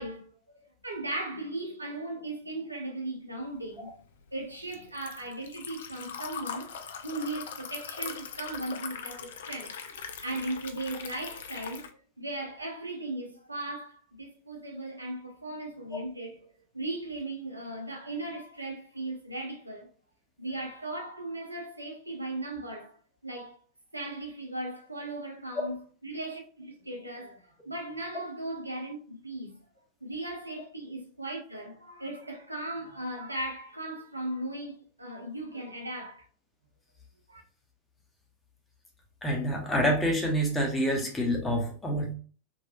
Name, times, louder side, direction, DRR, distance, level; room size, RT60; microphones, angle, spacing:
voice 1, 0.0-3.9 4.3-6.7 7.0-9.8 10.2-11.9 12.2-16.4 16.7-19.9 20.4-22.9 23.2-23.5 23.9-29.6 30.0-36.2 37.3-37.4, right 2 dB, 85° right, 0.7 m, -37 dB
Liquid, 3.6-11.9, left 7 dB, 60° left, 0.4 m, -41 dB
voice 2, 39.2-42.1, equal, 10° left, 0.9 m, -27 dB
3.0 x 2.6 x 2.9 m
figure-of-eight pair, 90°, 0 cm